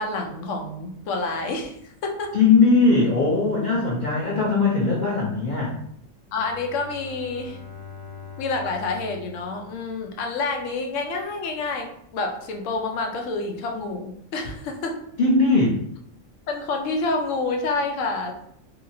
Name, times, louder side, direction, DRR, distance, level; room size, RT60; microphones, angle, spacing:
voice 1, 0.0-2.3 6.3-7.6 8.4-11.9 12.1-15.0 16.5-18.3, left 3 dB, 75° left, 3 dB, 0.9 m, -28 dB
voice 2, 2.3-5.7 15.2-15.8, left 3 dB, 55° left, -4 dB, 0.5 m, -19 dB
Bowed string instrument, 6.3-10.7, left 5 dB, 25° right, 0.6 m, -42 dB
2.8 x 2.7 x 2.6 m, 0.71 s
omnidirectional pair, 1.3 m